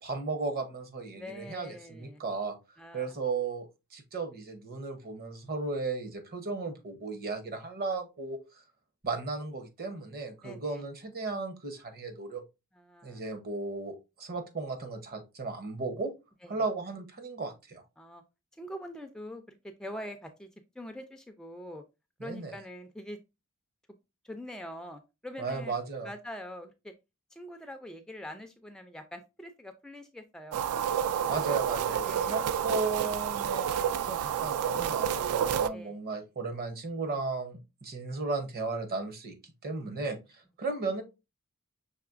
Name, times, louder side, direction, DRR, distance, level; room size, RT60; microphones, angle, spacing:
voice 1, 0.0-2.6 2.9-8.4 9.0-12.4 13.0-16.1 16.5-17.8 22.2-22.5 25.4-26.1 31.3-33.7 34.1-39.4 39.6-41.0, right 3 dB, 45° right, 0.8 m, -35 dB
voice 2, 1.1-2.2 2.8-3.2 10.4-10.8 12.7-13.2 16.4-16.6 18.0-18.2 18.6-20.5 20.8-21.8 22.2-23.2 24.2-25.7 26.0-26.9 27.3-31.1 31.4-31.6 32.0-32.4 35.7-36.0, left 1 dB, 5° left, 0.3 m, -44 dB
sound 1, 30.5-35.7, right 9 dB, 80° right, 0.3 m, -29 dB
5.8 x 3.0 x 2.5 m
head